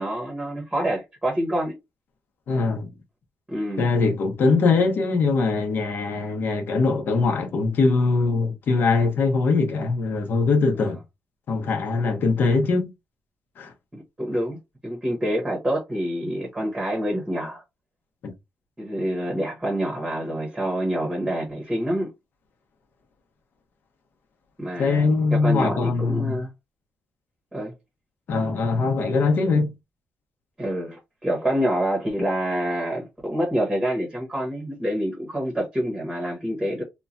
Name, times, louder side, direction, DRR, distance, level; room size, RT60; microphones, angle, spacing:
voice 1, 0.0-1.8 3.5-3.9 10.8-10.9 13.9-14.6 14.8-17.6 18.8-22.1 24.6-26.5 27.5-27.7 30.6-36.8, equal, 10° right, 0.9 m, -27 dB
voice 2, 2.5-2.9 3.8-11.0 11.5-12.9 13.6-13.7 18.2-18.3 24.8-26.4 28.3-29.7, left 4 dB, 55° left, 0.9 m, -22 dB
3.0 x 2.2 x 2.5 m
cardioid pair, 150°, 4 cm